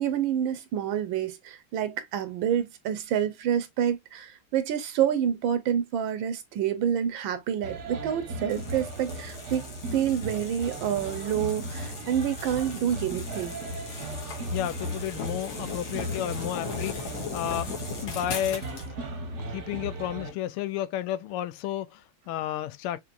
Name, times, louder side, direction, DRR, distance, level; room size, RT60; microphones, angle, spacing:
voice 1, 0.0-13.5, right 9 dB, 75° right, 1.4 m, -28 dB
sound 1, 7.6-20.3, right 1 dB, 45° right, 1.0 m, -37 dB
sound 2, 8.5-18.9, left 5 dB, 65° left, 2.1 m, -39 dB
voice 2, 14.2-17.7 18.0-18.8 19.5-23.0, left 12 dB, 90° left, 1.5 m, -32 dB
6.0 x 2.9 x 2.4 m
omnidirectional pair, 2.3 m